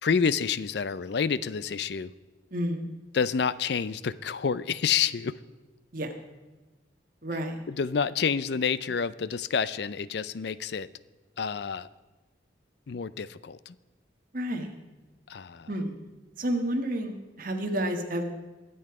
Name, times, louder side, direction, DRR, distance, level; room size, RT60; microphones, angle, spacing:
voice 1, 0.0-2.1 3.1-5.4 7.7-10.9 11.4-11.9 12.9-13.8 15.3-15.7, left 6 dB, 60° left, 17 dB, 0.4 m, -28 dB
voice 2, 2.5-2.9 5.9-6.1 7.2-7.6 14.3-14.7 15.7-16.0 16.4-18.2, right 1 dB, 45° right, 3 dB, 1.6 m, -30 dB
22.5 x 7.9 x 4.8 m, 1.2 s
head